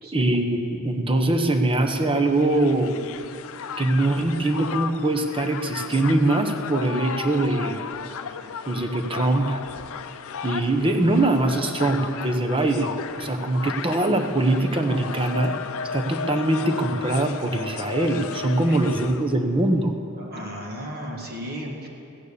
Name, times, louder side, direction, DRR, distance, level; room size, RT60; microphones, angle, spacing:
voice 1, 0.1-3.0 3.8-7.8 8.7-9.6 10.4-12.9 13.2-15.5 15.9-19.9, right 2 dB, 25° right, 5 dB, 1.0 m, -22 dB
Crowd, 1.9-19.3, left 6 dB, 65° left, 0.6 m, -35 dB
voice 2, 20.1-21.9, equal, 45° right, -1 dB, 1.7 m, -35 dB
15.0 x 9.4 x 6.9 m, 2.8 s
head